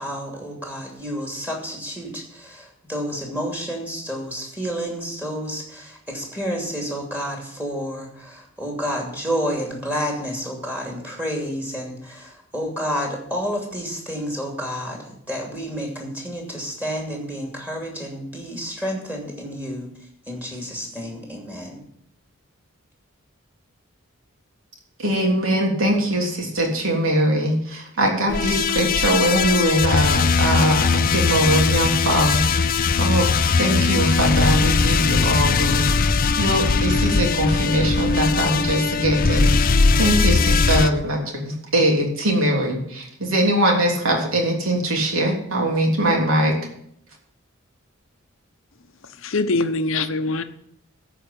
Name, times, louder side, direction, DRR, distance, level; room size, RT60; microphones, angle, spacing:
voice 1, 0.0-21.8, equal, 10° right, 0 dB, 2.7 m, -30 dB
voice 2, 25.0-46.5, right 1 dB, 70° right, 0 dB, 3.3 m, -22 dB
sound 1, 28.3-40.9, left 4 dB, 40° left, 0.5 m, -20 dB
voice 3, 49.2-50.4, left 3 dB, 65° left, 10 dB, 0.9 m, -23 dB
13.5 x 5.1 x 8.5 m, 0.71 s
head